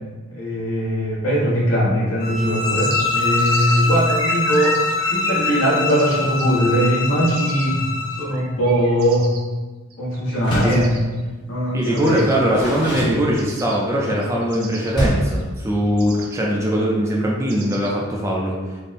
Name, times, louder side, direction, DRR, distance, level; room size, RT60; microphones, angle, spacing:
voice 1, 0.3-4.8 5.1-7.9 8.2-9.3 10.0-11.0 11.5-12.3, equal, 70° left, -6 dB, 1.1 m, -20 dB
sound 1, 2.2-8.3, left 3 dB, 45° left, 0.6 m, -23 dB
sound 2, 2.6-7.7 8.3-9.4 9.9-10.2 10.6-11.2 11.9-12.4 13.3-13.8 14.0-15.7 16.0-16.4 17.5-17.9, right 4 dB, 75° right, 0.5 m, -35 dB
Door, 10.3-10.9 12.0-13.7 14.9-15.4, equal, 20° left, 0.9 m, -25 dB
voice 2, 11.7-18.6, equal, 15° right, -3 dB, 0.4 m, -21 dB
3.5 x 2.0 x 4.1 m, 1.3 s
head